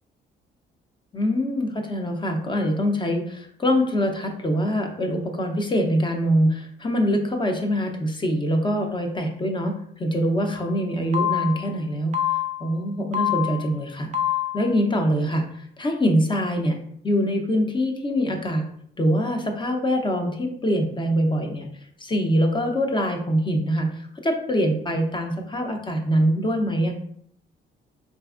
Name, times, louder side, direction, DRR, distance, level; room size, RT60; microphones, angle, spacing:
voice 1, 1.1-14.1 14.5-16.8 17.0-18.6 19.0-21.7 22.0-26.9, equal, 25° left, 3 dB, 0.6 m, -24 dB
sound 1, 10.6-10.7 11.1-11.7 12.1-12.7 13.1-13.7 14.1-14.7, left 11 dB, 35° right, 0.4 m, -26 dB
3.8 x 2.5 x 2.5 m, 0.66 s
cardioid pair, 90°, 20 cm